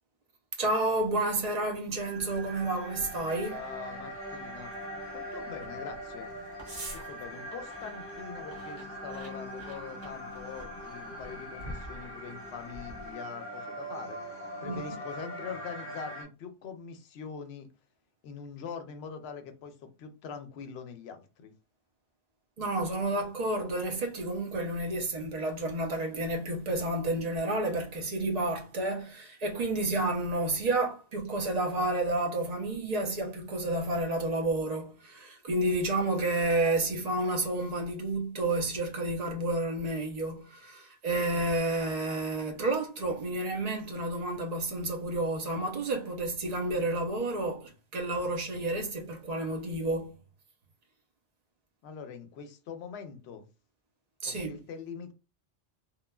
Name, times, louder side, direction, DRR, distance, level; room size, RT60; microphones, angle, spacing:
voice 1, 0.6-3.6 14.6-15.0 22.6-50.1 54.2-54.6, right 2 dB, 45° right, 0.6 m, -30 dB
sound 1, 2.0-16.2, equal, 15° left, 0.7 m, -42 dB
sound 2, 2.2-13.1, right 1 dB, 65° right, 1.1 m, -49 dB
voice 2, 3.5-4.7 5.1-6.3 6.9-17.7 18.2-21.5 51.8-53.5 54.2-55.1, left 6 dB, 75° left, 0.8 m, -43 dB
3.0 x 2.1 x 2.2 m
omnidirectional pair, 1.1 m